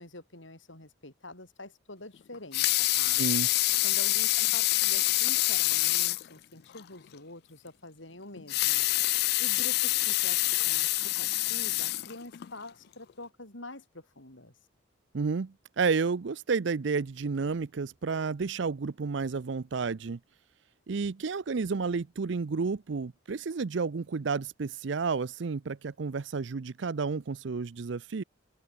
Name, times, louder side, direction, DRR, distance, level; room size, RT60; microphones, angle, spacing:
voice 1, 0.0-3.2 3.8-8.9 9.4-14.5, left 2 dB, 75° left, 7.1 m, -46 dB
Water tap faucet / Sink (filling or washing) / Liquid, 2.3-6.3 6.8-6.9 7.2-7.3 8.4-12.5 13.1-13.2, left 19 dB, 55° left, 0.3 m, -26 dB
voice 2, 3.2-3.5 15.1-20.2 20.9-28.2, right 4 dB, 65° right, 0.5 m, -31 dB
open air
head